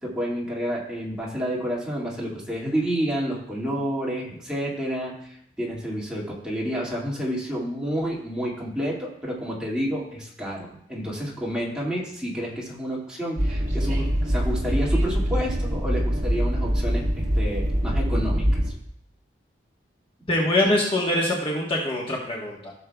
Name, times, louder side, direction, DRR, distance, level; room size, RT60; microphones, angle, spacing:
voice 1, 0.0-18.5, equal, 5° right, -5 dB, 2.1 m, -29 dB
Train, 13.4-18.7, equal, 45° right, 1.2 m, -24 dB
voice 2, 20.3-22.7, left 1 dB, 30° left, -3 dB, 1.2 m, -24 dB
15.0 x 6.5 x 2.3 m, 0.72 s
head